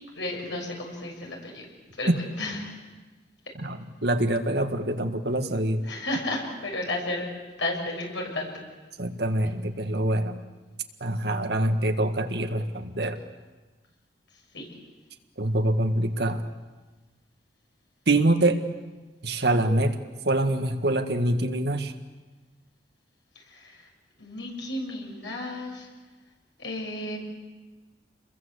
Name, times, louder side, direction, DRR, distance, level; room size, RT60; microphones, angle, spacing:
voice 1, 0.1-1.7 2.0-2.9 5.8-8.5 14.5-14.6 23.3-23.9 24.2-25.9 26.6-27.2, left 1 dB, 80° left, 0 dB, 6.9 m, -33 dB
voice 2, 3.6-5.9 9.0-10.4 11.0-13.2 15.4-16.5 18.1-18.6 19.2-20.0 20.2-21.9, right 1 dB, 60° right, 7 dB, 1.7 m, -25 dB
28.5 x 22.0 x 8.2 m, 1.2 s
head